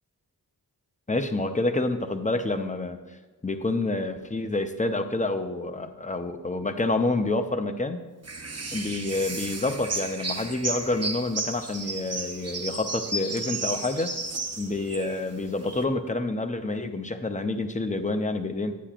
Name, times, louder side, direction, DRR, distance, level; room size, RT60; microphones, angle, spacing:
voice 1, 1.1-3.0 3.4-8.0 8.7-14.1 14.6-18.7, left 2 dB, 20° left, 8 dB, 0.6 m, -28 dB
sound 1, 8.2-15.8, right 3 dB, 40° right, 0.8 m, -33 dB
10.0 x 8.9 x 2.5 m, 1.3 s
wide cardioid pair, 65°, 39 cm